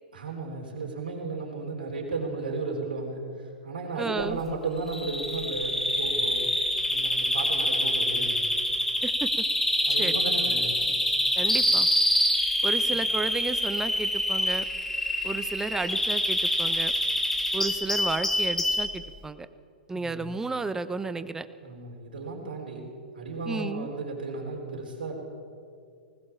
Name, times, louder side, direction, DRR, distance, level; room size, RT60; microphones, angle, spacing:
voice 1, 0.1-6.5 6.9-8.5 9.9-10.9 12.9-13.0 19.9-20.4 21.6-25.1, right 3 dB, 75° right, -1 dB, 4.1 m, -34 dB
voice 2, 4.0-4.4 9.0-9.5 10.0-10.1 11.4-11.9 12.6-14.7 15.2-16.9 17.5-19.5 19.9-21.5 23.5-23.9, right 3 dB, 10° right, 12 dB, 1.0 m, -32 dB
Bird vocalization bird call bird song, 4.9-18.9, left 1 dB, 5° left, 2.8 m, -26 dB
19.5 x 19.5 x 7.2 m, 2.3 s
figure-of-eight pair, 105°, 5 cm